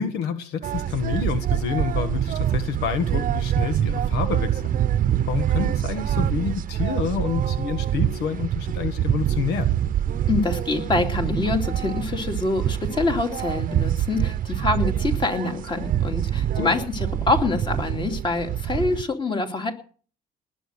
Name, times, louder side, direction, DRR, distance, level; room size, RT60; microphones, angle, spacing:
voice 1, 0.0-4.7 5.3-9.7 16.5-16.7, left 7 dB, 80° left, 9 dB, 1.5 m, -28 dB
sound 1, 0.6-19.0, right 11 dB, 55° right, 0.8 m, -25 dB
voice 2, 10.3-19.7, left 3 dB, 30° left, 4 dB, 2.8 m, -25 dB
19.5 x 7.8 x 6.6 m, 0.43 s
cardioid pair, 110°, 17 cm